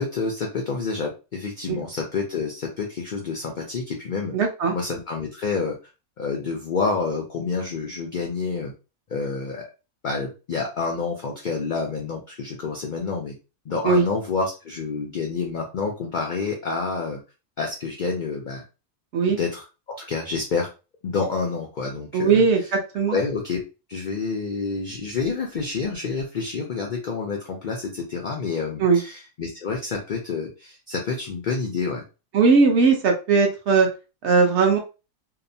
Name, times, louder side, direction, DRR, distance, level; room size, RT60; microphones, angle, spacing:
voice 1, 0.0-4.4 4.7-5.8 6.2-8.7 9.1-9.7 10.0-13.4 13.7-17.2 17.6-18.6 19.3-19.7 20.0-20.7 21.0-22.5 23.1-23.6 23.9-32.0, left 4 dB, 90° left, 1 dB, 0.4 m, -28 dB
voice 2, 4.3-4.7 13.8-14.1 19.1-19.4 22.1-23.2 28.8-29.0 32.3-33.9 34.2-34.8, right 4 dB, 65° right, 2 dB, 0.8 m, -19 dB
2.8 x 2.0 x 2.6 m, 0.31 s
omnidirectional pair, 1.5 m